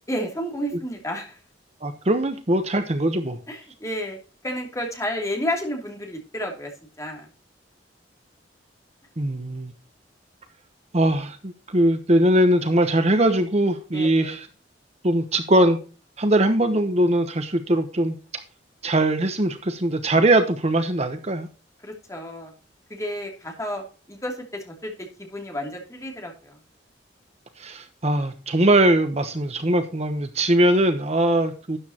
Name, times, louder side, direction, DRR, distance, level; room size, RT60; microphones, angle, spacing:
voice 1, 0.1-1.4 3.5-4.2 4.4-6.7 7.0-7.3 13.9-14.4 21.8-22.5 22.9-23.8 24.1-24.3 24.6-24.9 25.2-26.6, equal, 15° left, 1 dB, 2.8 m, -31 dB
voice 2, 1.8-3.4 9.2-9.7 10.9-14.5 15.0-15.8 16.2-18.1 18.8-21.5 27.6-31.8, right 1 dB, 35° right, 8 dB, 1.0 m, -21 dB
12.5 x 9.6 x 2.9 m, 0.35 s
head